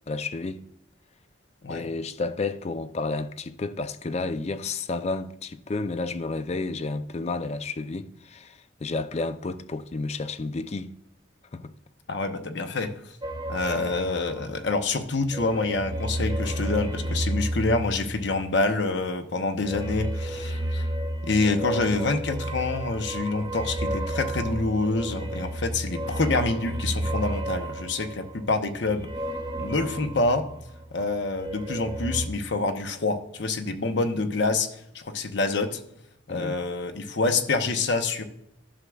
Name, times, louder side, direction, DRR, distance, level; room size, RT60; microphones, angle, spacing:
voice 1, 0.1-0.6 1.7-10.9 11.5-11.7 36.3-36.6, left 3 dB, 35° left, 0.4 m, -31 dB
voice 2, 12.1-12.9 13.5-20.9 21.2-29.1 29.6-30.4 30.9-35.8 36.3-38.2, left 3 dB, 60° left, 0.8 m, -27 dB
sound 1, 13.2-14.8 15.2-18.7 19.6-30.9 31.2-32.3, right 1 dB, 20° right, 0.7 m, -32 dB
11.5 x 6.2 x 2.3 m
head